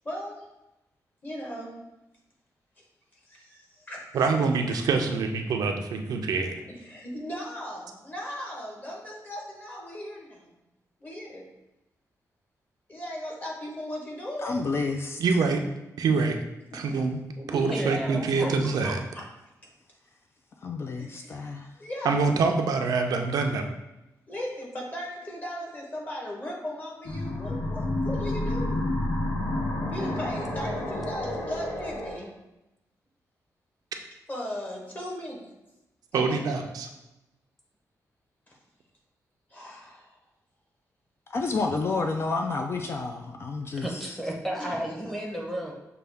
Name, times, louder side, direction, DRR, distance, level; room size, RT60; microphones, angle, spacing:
voice 1, 0.0-0.5 1.2-1.7 3.3-4.3 6.7-10.5 11.0-11.5 12.9-14.7 16.7-17.0 17.7-17.9 18.4-18.5 18.8-19.3 21.0-21.5 21.8-22.3 24.3-28.9 29.9-32.3 34.3-35.5 36.1-36.6 38.5-38.6 39.5-40.2 44.6-44.8, left 1 dB, 25° left, -2 dB, 1.1 m, -37 dB
voice 2, 4.1-6.5 15.2-15.6 16.0-16.4 16.7-17.2 17.5-19.0 22.0-23.6 36.1-36.9, right 4 dB, 90° right, 4 dB, 0.5 m, -25 dB
voice 3, 14.4-15.2 20.6-21.7 41.3-44.0, left 3 dB, 45° left, 3 dB, 0.3 m, -30 dB
voice 4, 17.4-18.9 43.7-45.7, right 1 dB, 5° left, -1 dB, 0.8 m, -33 dB
sound 1, 27.1-32.2, left 1 dB, 85° left, 0.9 m, -30 dB
6.4 x 2.3 x 3.4 m, 0.95 s
wide cardioid pair, 145°, 6 cm